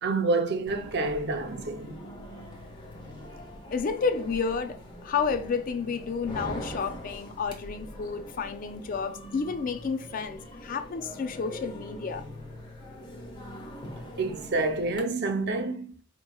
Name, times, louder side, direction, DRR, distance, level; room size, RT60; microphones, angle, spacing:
voice 1, 0.0-2.0 14.0-16.0, right 3 dB, 50° right, 0.6 m, -28 dB
sound 1, 0.7-15.0, equal, 20° left, 0.8 m, -43 dB
voice 2, 3.7-12.2, left 5 dB, 40° left, 0.3 m, -31 dB
4.9 x 3.0 x 2.3 m
head